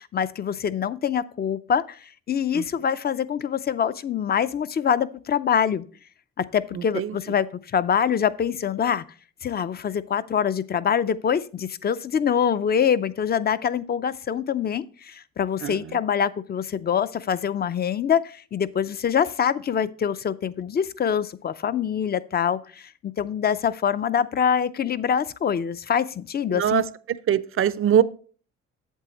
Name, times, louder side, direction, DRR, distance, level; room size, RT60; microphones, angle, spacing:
voice 1, 0.0-2.0 2.3-5.8 6.4-7.5 7.7-9.0 9.4-26.8, left 8 dB, 35° left, 0.4 m, -25 dB
voice 2, 26.5-26.8 27.3-28.0, right 9 dB, 45° right, 0.5 m, -21 dB
8.2 x 7.5 x 3.0 m
cardioid pair, 90°, 30 cm